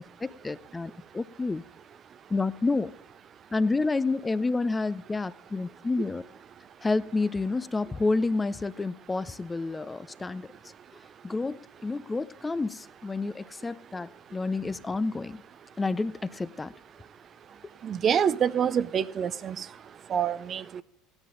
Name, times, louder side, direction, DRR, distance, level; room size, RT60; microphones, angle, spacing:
voice 1, 0.0-1.6 2.3-2.9 3.5-6.2 6.8-10.5 11.2-15.4 15.8-16.7, left 3 dB, 15° left, 0.5 m, -29 dB
voice 2, 17.8-19.7 20.1-20.8, right 8 dB, 40° right, 0.6 m, -26 dB
16.0 x 10.5 x 3.9 m
hypercardioid pair, 75°, 0 cm